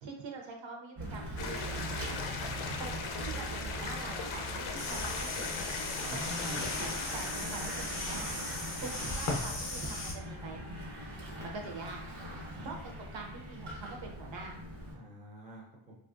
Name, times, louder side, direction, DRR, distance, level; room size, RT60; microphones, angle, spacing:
voice 1, 0.0-1.6 2.6-5.6 5.9-10.6 11.4-12.0 12.3-14.6, right 4 dB, 65° right, 1 dB, 0.7 m, -45 dB
Bicycle / Mechanisms, 1.0-14.9, right 1 dB, 80° right, 1.1 m, -42 dB
sound 1, 1.4-8.2, left 4 dB, 80° left, 0.6 m, -39 dB
sound 2, 4.8-10.1, left 2 dB, 35° left, 0.5 m, -37 dB
voice 2, 6.0-6.7 9.0-9.1 12.2-12.7 14.9-16.0, equal, 15° right, -3 dB, 0.4 m, -46 dB
3.2 x 2.4 x 2.4 m, 0.74 s
wide cardioid pair, 175°, 49 cm